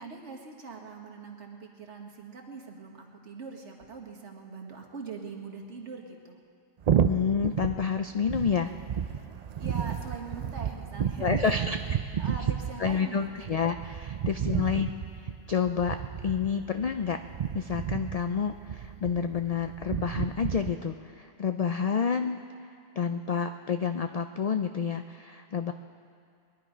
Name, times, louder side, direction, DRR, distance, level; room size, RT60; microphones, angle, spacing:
voice 1, 0.0-6.4 9.6-11.7 12.2-13.5 14.1-14.2 14.5-14.8, right 4 dB, 75° right, 1 dB, 1.8 m, -42 dB
sound 1, 6.8-20.7, right 8 dB, 60° right, 0.4 m, -32 dB
voice 2, 7.1-8.7 11.2-11.8 12.8-14.9 15.5-17.2 17.5-22.4 23.0-25.7, left 6 dB, 80° left, 7 dB, 0.3 m, -29 dB
21.0 x 11.0 x 5.1 m, 2.3 s
omnidirectional pair, 1.2 m